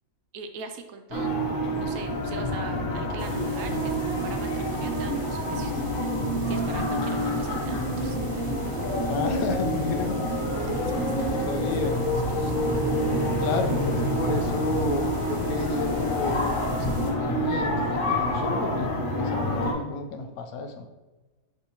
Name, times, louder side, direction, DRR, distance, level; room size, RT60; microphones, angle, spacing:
voice 1, 0.3-1.4 1.7-5.8 6.5-8.5 10.1-12.5, right 5 dB, 85° right, 6 dB, 1.0 m, -42 dB
sound 1, 1.1-19.7, equal, 45° left, 0.8 m, -27 dB
sound 2, 3.2-17.1, left 1 dB, 40° right, 0.4 m, -40 dB
voice 2, 9.0-10.2 10.6-10.8 11.1-12.0 13.4-20.9, left 3 dB, 80° left, 5 dB, 1.0 m, -32 dB
5.2 x 3.5 x 2.8 m, 1.2 s
omnidirectional pair, 1.5 m